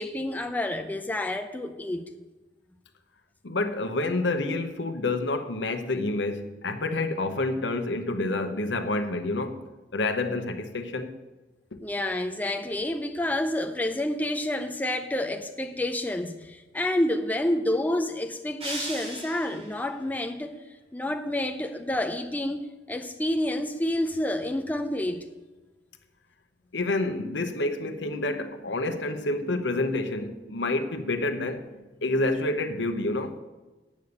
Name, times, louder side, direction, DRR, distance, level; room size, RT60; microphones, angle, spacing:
voice 1, 0.0-2.1 11.8-20.5 20.9-25.3, left 1 dB, 10° left, 0.5 m, -29 dB
voice 2, 3.4-9.6 9.9-11.1 11.7-11.8 26.7-31.6 32.0-33.3, left 2 dB, 70° left, 1.0 m, -28 dB
sound 1, 18.6-19.9, right 1 dB, 35° right, 2.6 m, -37 dB
8.3 x 6.9 x 8.1 m
head